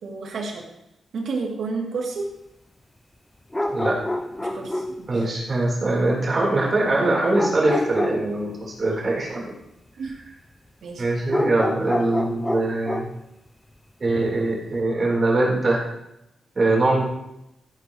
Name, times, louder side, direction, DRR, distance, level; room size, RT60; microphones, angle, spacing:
voice 1, 0.0-0.7 1.1-2.3 4.4-5.1 7.7-7.8 10.0-10.1 10.8-11.0, right 4 dB, 70° right, -1 dB, 2.9 m, -30 dB
sound 1, 3.5-5.1 5.7-5.8 7.3-8.7 11.3-13.2, left 1 dB, 10° left, 0.6 m, -27 dB
voice 2, 5.1-9.5 11.0-13.0 14.0-15.8 16.6-17.0, right 2 dB, 35° right, -3 dB, 4.1 m, -22 dB
13.5 x 11.5 x 3.2 m, 0.84 s
wide cardioid pair, 125°, 0 cm